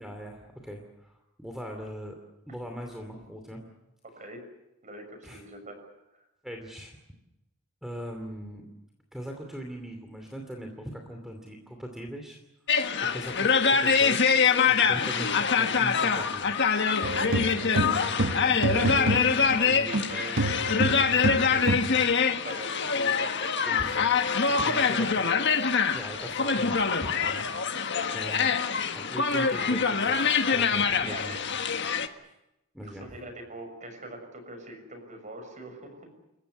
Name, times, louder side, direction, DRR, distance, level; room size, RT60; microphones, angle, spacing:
voice 1, 0.0-2.2 2.5-3.7 5.2-5.4 6.4-7.0 7.8-8.7 9.1-12.4 12.7-16.7 18.7-20.2 23.7-24.1 24.7-25.2 25.9-27.5 28.1-31.4 32.7-33.2, equal, ahead, 3 dB, 2.7 m, -40 dB
voice 2, 4.8-5.8 13.0-13.2 17.0-18.7 19.6-23.3 24.5-25.4 31.0-31.4 32.8-36.2, right 1 dB, 35° right, 5 dB, 6.5 m, -43 dB
sound 1, 12.7-32.1, left 6 dB, 55° left, 1.5 m, -25 dB
sound 2, 17.0-20.1 20.4-22.0, right 1 dB, 60° right, 1.3 m, -28 dB
28.5 x 15.0 x 9.8 m, 0.92 s
head